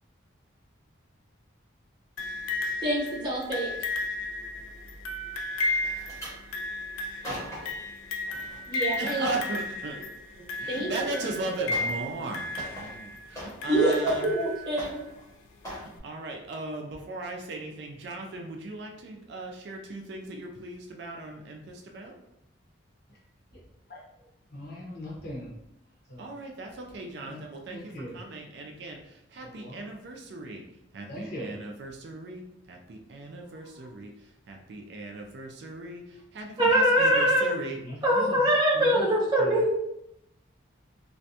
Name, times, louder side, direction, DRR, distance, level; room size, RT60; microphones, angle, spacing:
sound 1, 2.2-15.0 16.0-16.1, left 2 dB, 85° left, 0.4 m, -34 dB
voice 1, 2.8-3.7 8.7-9.3 10.7-11.1 13.7-15.0 36.6-37.5 38.0-39.8, right 1 dB, 20° right, -7 dB, 0.8 m, -24 dB
sound 2, 5.8-6.4 7.0-7.8 8.3-8.6 8.9-9.5 10.9-11.0 11.7-12.0 12.3-13.7 14.0-14.5 14.8-15.2 15.6-15.9 16.4-16.6 16.9-17.0, left 1 dB, 15° left, 0.8 m, -40 dB
voice 2, 9.0-10.0 10.6-14.3 15.6-22.2 26.2-30.6 30.9-32.4 32.7-34.1 34.5-37.8, right 2 dB, 55° right, 1 dB, 0.3 m, -38 dB
voice 3, 23.9-25.5 26.1-26.3 27.2-27.4 27.7-28.2 29.4-29.8 31.1-31.6 33.4-33.9 37.7-39.8, equal, 50° left, -5 dB, 0.8 m, -41 dB
2.5 x 2.2 x 2.6 m, 0.83 s
head